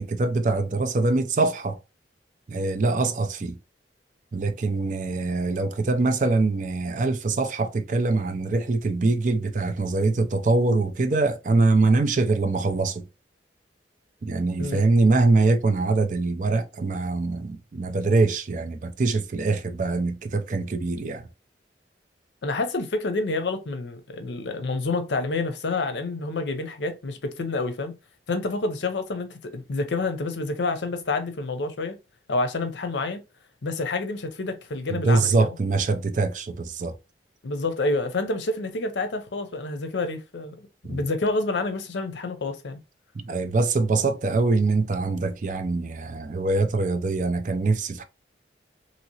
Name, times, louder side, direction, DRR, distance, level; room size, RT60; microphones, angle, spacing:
voice 1, 0.0-1.8 2.5-3.6 4.3-13.1 14.2-21.3 34.9-37.0 40.8-41.0 43.1-48.0, right 3 dB, 45° right, 0.4 m, -23 dB
voice 2, 22.4-28.0 28.3-32.0 32.3-33.2 33.6-35.5 37.4-42.8, left 3 dB, 85° left, 0.6 m, -28 dB
2.9 x 2.8 x 2.8 m
head